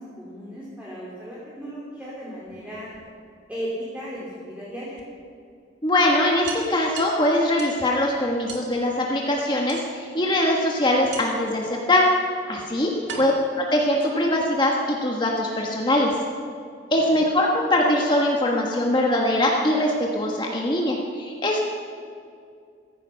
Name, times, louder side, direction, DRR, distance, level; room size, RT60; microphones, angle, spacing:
voice 1, 0.0-2.9 3.5-5.0 13.1-13.3 17.0-17.2, equal, 10° right, -7 dB, 3.2 m, -36 dB
sound 1, 2.3-3.5 5.0-5.1 5.5-5.6 5.9-6.0 6.5-7.9 8.5-8.7 9.7-10.2 11.1-11.5 12.4-12.5 13.1-14.4, right 5 dB, 90° right, 2.4 m, -39 dB
voice 2, 5.8-12.1 12.5-13.3 13.6-16.1 16.9-21.6, left 1 dB, 25° left, -1 dB, 1.4 m, -22 dB
15.5 x 15.0 x 5.8 m, 2.3 s
head